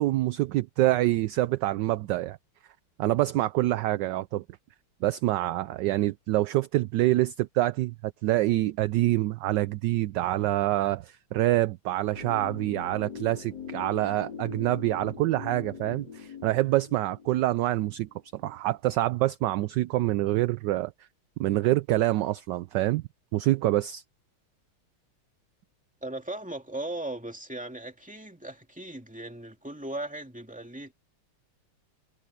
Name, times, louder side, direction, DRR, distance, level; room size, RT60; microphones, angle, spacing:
voice 1, 0.0-2.4 3.0-4.4 5.0-20.9 21.4-23.0 23.3-24.0, right 16 dB, 75° right, 1.0 m, -26 dB
sound 1, 12.1-18.1 18.4-18.5, left 6 dB, 50° left, 4.6 m, -42 dB
voice 2, 26.0-30.9, right 1 dB, 5° right, 2.3 m, -37 dB
omnidirectional pair, 2.3 m